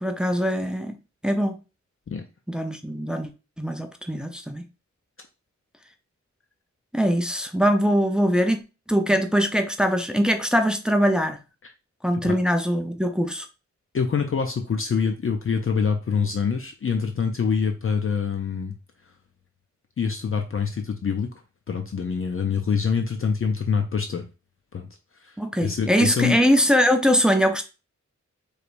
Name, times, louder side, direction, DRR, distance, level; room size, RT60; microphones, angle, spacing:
voice 1, 0.0-0.9 1.2-1.6 2.5-3.3 3.6-4.7 6.9-8.6 8.9-11.4 12.0-13.5 25.4-27.6, equal, 5° right, 0.4 m, -22 dB
voice 2, 13.9-18.7 20.0-21.3 21.7-24.2 24.7-24.9 25.2-25.4 25.6-26.4, left 6 dB, 45° left, 0.5 m, -25 dB
4.8 x 3.2 x 2.5 m
wide cardioid pair, 125°, 29 cm